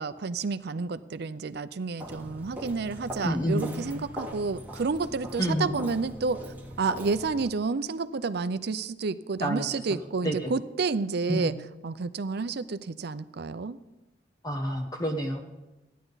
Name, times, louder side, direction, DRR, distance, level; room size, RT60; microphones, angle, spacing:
voice 1, 0.0-6.4 6.8-11.5 11.8-13.8, right 4 dB, 60° right, 13 dB, 0.5 m, -30 dB
Walk footsteps, 2.0-7.5, equal, 10° right, 1.5 m, -41 dB
voice 2, 3.2-3.8 5.4-5.8 9.4-10.5 11.3-11.5 14.4-15.4, equal, 20° left, 2 dB, 0.9 m, -29 dB
15.5 x 10.0 x 4.0 m, 1.0 s
head